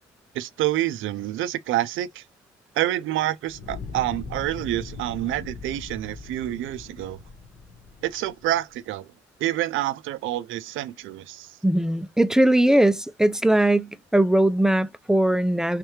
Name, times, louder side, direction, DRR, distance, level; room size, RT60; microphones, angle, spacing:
voice 1, 0.3-2.2 2.8-7.2 8.0-9.1 9.4-11.6, right 14 dB, 80° right, 0.4 m, -27 dB
Fire, 3.4-8.6, left 4 dB, 50° left, 1.1 m, -40 dB
voice 2, 11.6-15.8, right 1 dB, 5° right, 0.3 m, -20 dB
3.2 x 3.2 x 3.2 m
cardioid pair, 90°, 20 cm